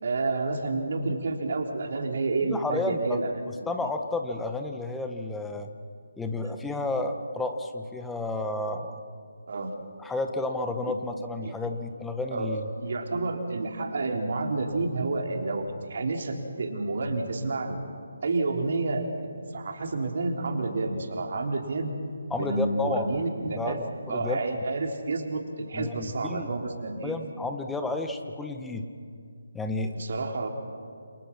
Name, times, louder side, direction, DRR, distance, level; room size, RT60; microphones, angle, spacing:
voice 1, 0.0-3.3 3.8-3.9 6.4-6.5 9.5-9.8 10.8-11.0 11.4-11.5 12.3-17.8 18.2-21.9 22.4-23.8 24.1-27.1 29.9-30.5, right 3 dB, 50° right, 3 dB, 3.6 m, -30 dB
voice 2, 2.5-3.2 3.7-5.7 6.2-9.0 10.0-12.7 22.3-23.1 23.5-24.4 25.7-26.5 27.0-28.9 29.5-29.9, left 2 dB, 5° left, 6 dB, 1.3 m, -31 dB
28.5 x 28.5 x 6.1 m, 2.3 s
figure-of-eight pair, 150°, 0 cm